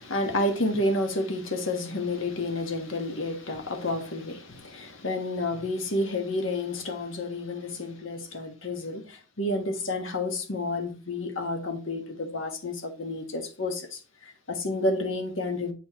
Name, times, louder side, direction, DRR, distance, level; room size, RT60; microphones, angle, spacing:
voice 1, 0.0-15.7, left 2 dB, 75° left, 1.4 m, -30 dB
7.1 x 5.2 x 3.0 m
head